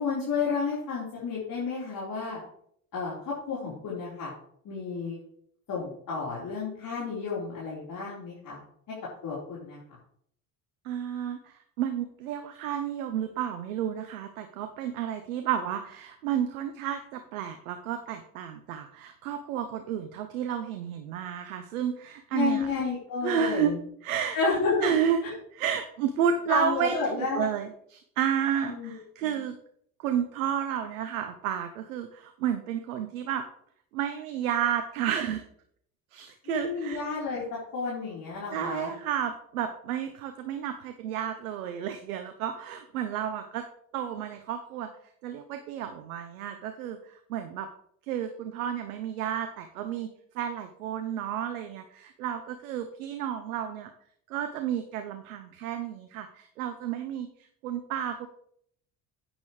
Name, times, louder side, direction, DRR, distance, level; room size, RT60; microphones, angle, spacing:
voice 1, 0.0-2.4 2.9-4.3 4.6-5.2 5.7-8.9 9.2-9.8 22.3-23.8 24.3-24.9 25.2-25.3 26.5-27.5 28.6-28.9 29.2-29.4 36.5-38.9, left 4 dB, 55° left, -7 dB, 4.2 m, -31 dB
voice 2, 10.8-22.7 23.2-23.7 24.0-24.4 24.8-25.2 25.5-29.5 30.0-33.4 33.9-35.4 36.1-37.0 38.5-43.6 43.9-44.9 45.2-47.7 48.0-50.1 50.3-53.9 54.3-57.3 57.6-58.3, right 9 dB, 90° right, 7 dB, 0.8 m, -31 dB
10.5 x 9.1 x 3.2 m, 0.66 s
hypercardioid pair, 65°, 42 cm